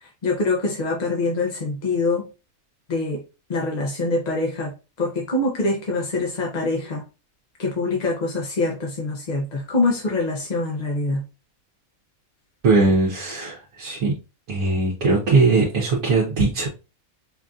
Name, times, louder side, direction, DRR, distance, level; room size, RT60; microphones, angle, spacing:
voice 1, 0.0-2.3 2.9-3.2 3.5-7.0 7.6-11.2, left 3 dB, 45° left, 0.6 m, -24 dB
voice 2, 12.6-14.1 14.5-16.7, right 3 dB, 70° right, 1.3 m, -20 dB
5.0 x 2.5 x 2.3 m
omnidirectional pair, 1.5 m